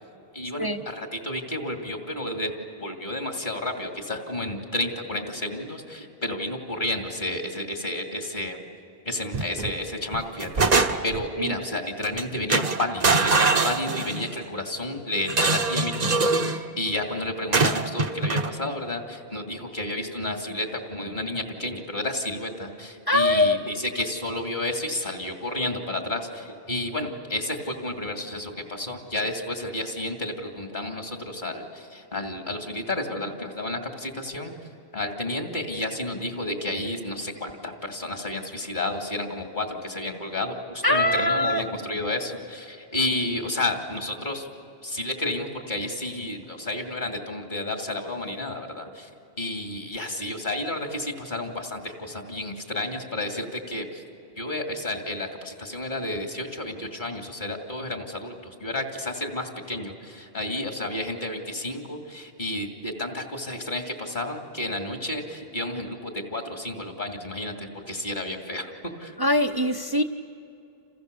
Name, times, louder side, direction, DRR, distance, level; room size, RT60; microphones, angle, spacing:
voice 1, 0.3-8.6 9.0-10.7 11.0-34.5 34.9-44.5 44.8-49.1 49.4-54.0 54.4-68.7 69.0-69.2, left 1 dB, 50° left, 3 dB, 2.9 m, -31 dB
sound 1, 9.3-9.7 10.1-11.3 12.0-12.2 12.5-14.3 15.3-16.6 17.5-18.5, right 3 dB, 45° right, 1.0 m, -23 dB
voice 2, 23.1-23.6 40.8-41.6 69.2-70.0, left 1 dB, 25° right, 4 dB, 0.8 m, -22 dB
29.5 x 28.5 x 6.9 m, 2.6 s
omnidirectional pair, 1.0 m